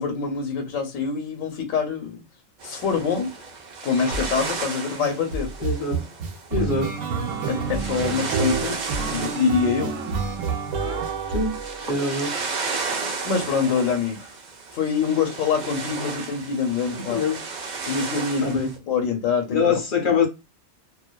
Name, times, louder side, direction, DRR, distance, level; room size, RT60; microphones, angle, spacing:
voice 1, 0.0-2.2 2.6-3.3 3.8-5.5 6.6-6.7 7.4-9.9 13.2-14.3 14.7-17.2 17.9-19.8, left 6 dB, 90° left, 1.0 m, -25 dB
sound 1, 2.6-18.8, right 4 dB, 60° right, 0.4 m, -34 dB
sound 2, 4.1-4.5 5.0-12.2, right 5 dB, 85° right, 1.0 m, -28 dB
voice 2, 5.6-6.0 6.5-6.9 11.3-11.6 11.9-12.3 16.9-17.4 18.4-18.7 19.5-20.3, left 4 dB, 55° left, 0.6 m, -24 dB
2.5 x 2.2 x 2.2 m
omnidirectional pair, 1.3 m